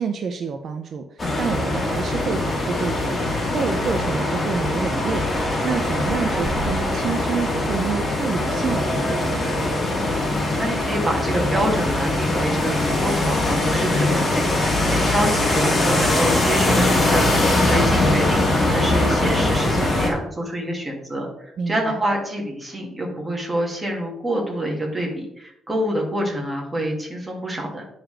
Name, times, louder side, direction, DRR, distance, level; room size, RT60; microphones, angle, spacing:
voice 1, 0.0-3.2 3.5-9.6 21.6-22.0, right 6 dB, 60° right, 6 dB, 0.5 m, -28 dB
sound 1, 1.2-20.1, left 2 dB, 25° left, 2.0 m, -21 dB
voice 2, 10.6-14.5 14.8-27.9, right 1 dB, 15° right, -1 dB, 2.1 m, -26 dB
9.8 x 4.0 x 3.3 m, 0.79 s
cardioid pair, 90°, 0 cm